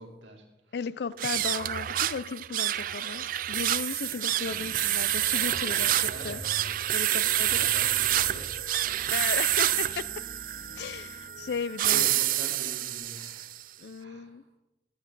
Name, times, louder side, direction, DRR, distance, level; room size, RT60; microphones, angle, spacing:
voice 1, 0.0-0.7 4.0-4.3 5.6-6.4 6.9-8.9 11.8-13.5 14.0-14.4, right 1 dB, 90° right, 1 dB, 2.2 m, -45 dB
voice 2, 0.7-6.4 6.9-7.7 9.1-10.1 10.8-12.2 13.8-14.4, left 6 dB, 60° left, 18 dB, 0.4 m, -35 dB
sound 1, 1.1-13.6, right 13 dB, 45° right, 0.3 m, -28 dB
Piano, 4.4-11.5, equal, 25° right, 2.5 m, -47 dB
14.5 x 8.5 x 3.8 m, 1.0 s
head